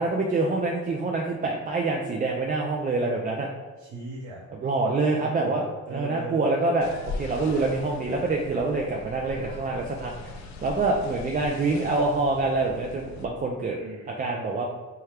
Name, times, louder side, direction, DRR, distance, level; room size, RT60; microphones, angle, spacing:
voice 1, 0.0-3.5 4.6-5.6 5.9-10.3 10.6-13.8 14.2-14.7, right 3 dB, 30° right, 0 dB, 0.4 m, -26 dB
voice 2, 3.8-4.4 5.2-6.4 13.8-14.2, right 2 dB, 70° right, -4 dB, 0.9 m, -38 dB
sound 1, 6.8-13.3, left 3 dB, 65° left, 0.5 m, -40 dB
4.3 x 2.3 x 3.3 m, 1.3 s
cardioid pair, 90°, 30 cm